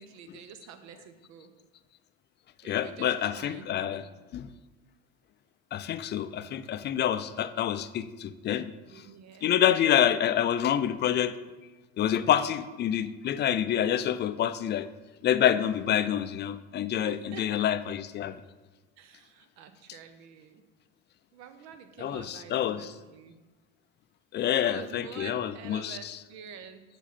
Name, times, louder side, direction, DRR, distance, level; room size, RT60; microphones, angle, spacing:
voice 1, 0.0-1.5 2.6-4.1 8.9-9.5 17.0-17.6 19.0-20.6 21.3-23.4 24.6-26.8, right 7 dB, 60° right, 9 dB, 0.8 m, -47 dB
voice 2, 2.6-4.0 4.3-4.5 5.7-8.7 9.4-11.3 12.0-14.9 15.2-18.4 22.0-22.9 24.3-26.2, left 10 dB, 35° left, 13 dB, 0.4 m, -27 dB
6.0 x 5.4 x 4.1 m, 1.2 s
supercardioid pair, 85°, 31 cm